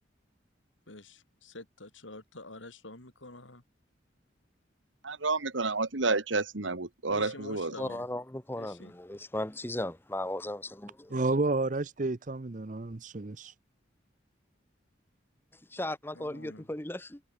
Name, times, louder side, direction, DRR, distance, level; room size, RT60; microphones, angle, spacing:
voice 1, 0.9-3.6 7.1-8.1 8.6-8.9 16.1-16.7, left 2 dB, 85° left, 5.3 m, -47 dB
voice 2, 5.0-7.7, right 3 dB, 85° right, 1.9 m, -30 dB
voice 3, 7.8-11.1 15.7-17.2, left 1 dB, 10° left, 1.0 m, -36 dB
voice 4, 11.1-13.5, right 2 dB, 40° right, 0.7 m, -30 dB
head